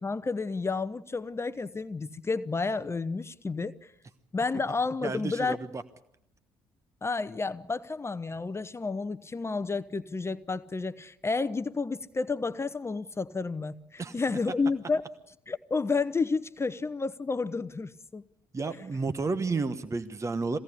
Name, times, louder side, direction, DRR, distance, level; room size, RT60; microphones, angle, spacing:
voice 1, 0.0-3.8 4.3-5.6 7.0-15.0 15.5-18.3, left 4 dB, 25° left, 0.9 m, -31 dB
voice 2, 5.0-5.8 14.0-14.2 18.5-20.6, right 4 dB, 25° right, 1.3 m, -31 dB
23.0 x 17.0 x 8.5 m
hypercardioid pair, 50°, 11 cm